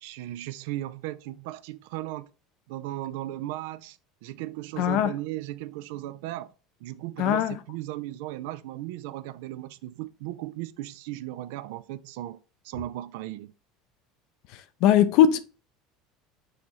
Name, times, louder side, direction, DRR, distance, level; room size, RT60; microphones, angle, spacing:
voice 1, 0.0-2.3 2.7-6.5 6.8-12.4 12.6-13.5, right 15 dB, 75° right, 0.3 m, -36 dB
voice 2, 4.8-5.1 7.2-7.5 14.8-15.4, left 10 dB, 65° left, 0.5 m, -20 dB
6.4 x 2.7 x 2.9 m
hypercardioid pair, 90°, 0 cm